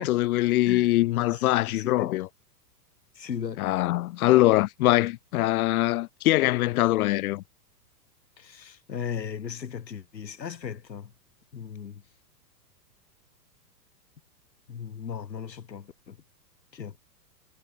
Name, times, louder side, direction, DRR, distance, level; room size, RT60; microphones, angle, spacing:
voice 1, 0.0-2.3 3.6-7.4, left 17 dB, 60° left, 0.8 m, -23 dB
voice 2, 1.2-2.1 3.2-3.7 8.4-11.1 11.5-12.0 14.7-16.2 16.7-16.9, left 7 dB, 90° left, 3.8 m, -36 dB
hypercardioid pair, 120°, 49 cm